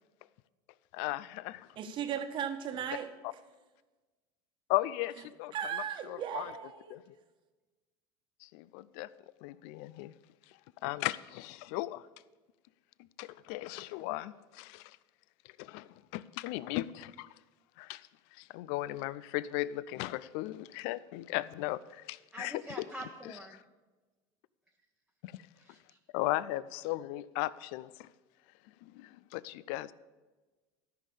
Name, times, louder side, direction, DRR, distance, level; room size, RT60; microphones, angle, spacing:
voice 1, 0.9-1.7 4.7-5.5 6.1-6.5 6.9-7.0 8.4-9.1 9.4-10.1 10.8-12.0 13.2-14.9 15.6-17.3 17.8-18.1 18.4-22.9 23.2-23.3 25.2-25.3 26.1-28.1 28.8-29.9, left 17 dB, 70° left, 19 dB, 0.4 m, -36 dB
voice 2, 1.8-3.1 5.5-7.0, right 8 dB, 45° right, 7 dB, 1.2 m, -36 dB
voice 3, 22.3-23.6 25.6-26.0, right 1 dB, 5° right, -1 dB, 1.0 m, -45 dB
13.5 x 5.6 x 6.9 m, 1.3 s
supercardioid pair, 105°, 11 cm